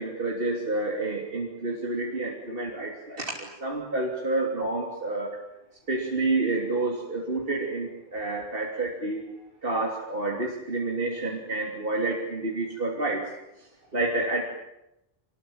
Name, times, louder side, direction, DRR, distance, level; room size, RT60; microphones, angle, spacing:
voice 1, 0.0-3.2 3.6-5.3 5.9-9.2 9.6-13.2 13.9-14.4, right 2 dB, 65° right, -1 dB, 3.5 m, -29 dB
26.0 x 21.0 x 8.9 m, 0.87 s
omnidirectional pair, 1.0 m